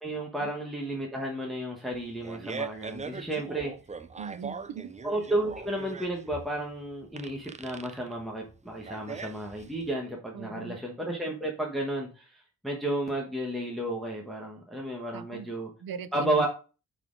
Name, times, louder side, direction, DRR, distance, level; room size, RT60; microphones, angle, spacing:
voice 1, 0.0-3.7 5.0-15.7 16.1-16.5, right 1 dB, ahead, 1.2 m, -32 dB
Fart, 1.9-9.9, right 5 dB, 20° right, 0.4 m, -40 dB
voice 2, 4.2-4.9 10.3-10.8 15.1-15.5 15.8-16.5, right 7 dB, 80° right, 0.7 m, -39 dB
9.1 x 4.2 x 3.8 m
wide cardioid pair, 145°, 35 cm